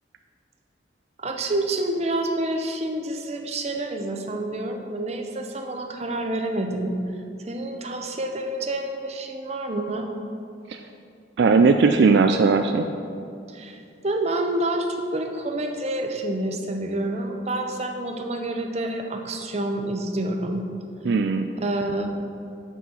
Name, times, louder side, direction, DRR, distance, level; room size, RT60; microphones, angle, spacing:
voice 1, 1.2-7.0 7.4-10.1 13.5-14.9 15.1-20.6 21.6-22.1, right 1 dB, 35° right, 3 dB, 0.7 m, -28 dB
voice 2, 11.4-12.8 21.0-21.5, right 4 dB, 65° right, 6 dB, 0.4 m, -18 dB
6.1 x 5.7 x 7.1 m, 2.5 s
head